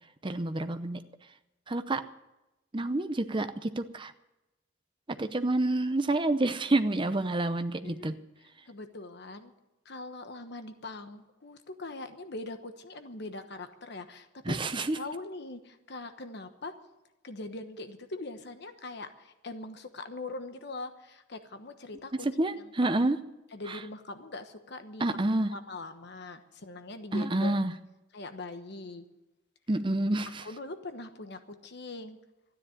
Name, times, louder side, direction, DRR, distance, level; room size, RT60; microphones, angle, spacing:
voice 1, 0.2-1.0 1.7-2.0 2.7-4.1 5.1-8.1 14.4-15.0 22.2-23.2 23.7-23.8 25.0-25.5 27.1-27.7 29.7-30.5, right 2 dB, 25° right, 9 dB, 0.7 m, -28 dB
voice 2, 8.7-9.5 9.8-14.6 14.9-16.7 17.2-22.3 23.5-25.0 25.5-27.6 28.1-29.0 30.4-32.2, left 2 dB, 55° left, 8 dB, 1.1 m, -42 dB
13.0 x 10.0 x 9.8 m, 0.97 s
head